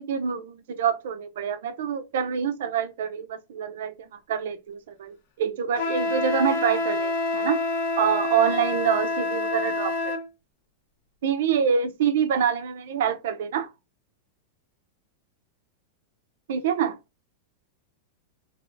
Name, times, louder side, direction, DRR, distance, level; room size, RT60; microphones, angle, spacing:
voice 1, 0.0-7.6 8.0-10.2 11.2-13.7 16.5-17.0, right 8 dB, 75° right, 0.4 m, -26 dB
Wind instrument woodwind instrument, 5.8-10.2, left 3 dB, 65° left, 0.7 m, -27 dB
3.2 x 2.8 x 2.5 m
supercardioid pair, 135°, 0 cm